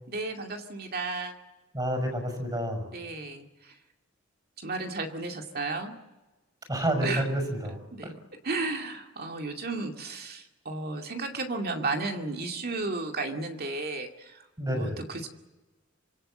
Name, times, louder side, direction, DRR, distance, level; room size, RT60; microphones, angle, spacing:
voice 1, 0.1-1.3 2.9-3.7 4.6-5.9 7.0-7.2 7.9-8.1 8.4-14.4 14.7-15.3, right 3 dB, 50° right, 4 dB, 2.3 m, -33 dB
voice 2, 1.7-2.9 6.7-8.1 14.6-15.0, right 1 dB, 20° right, 3 dB, 6.1 m, -29 dB
26.0 x 24.0 x 7.8 m, 1.1 s
head